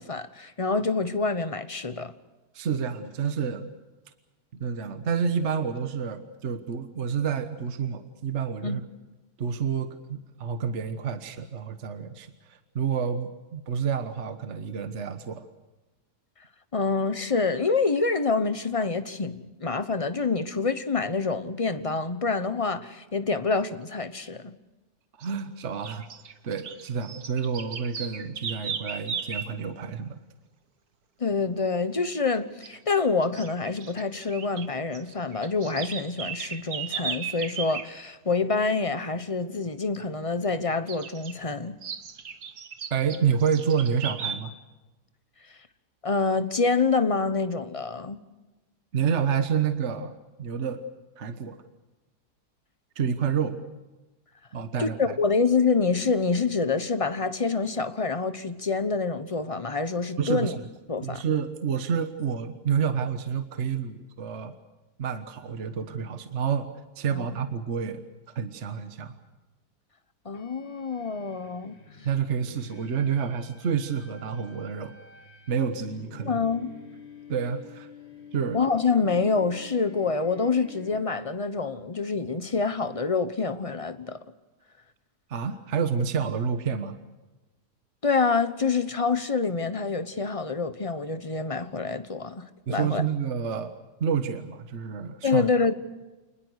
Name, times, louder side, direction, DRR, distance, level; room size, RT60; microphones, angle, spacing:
voice 1, 0.0-2.1 8.6-8.8 16.7-24.5 31.2-41.8 46.0-48.2 54.8-60.5 60.9-61.2 67.1-67.4 70.2-71.8 76.3-76.7 78.5-84.2 88.0-93.0 95.2-95.7, left 4 dB, 25° left, 0.9 m, -26 dB
voice 2, 2.5-3.7 4.6-8.8 9.4-15.4 25.2-26.0 26.4-30.2 42.9-44.5 48.9-50.8 51.2-51.6 53.0-53.6 54.5-55.1 60.2-60.5 61.0-64.5 65.0-66.7 67.0-68.0 68.3-69.1 72.0-74.9 75.5-76.4 77.3-77.9 78.3-78.6 85.3-87.0 92.7-93.7 94.0-95.5, right 7 dB, 50° right, 1.5 m, -29 dB
sound 1, 25.2-25.4 25.8-29.5 32.1-32.4 32.6-32.8 33.2-34.7 34.9-37.9 40.9-41.3 41.8-44.4, right 6 dB, 70° right, 1.8 m, -36 dB
sound 2, 70.3-81.4, left 5 dB, 40° left, 2.5 m, -49 dB
28.0 x 20.5 x 6.5 m
omnidirectional pair, 1.7 m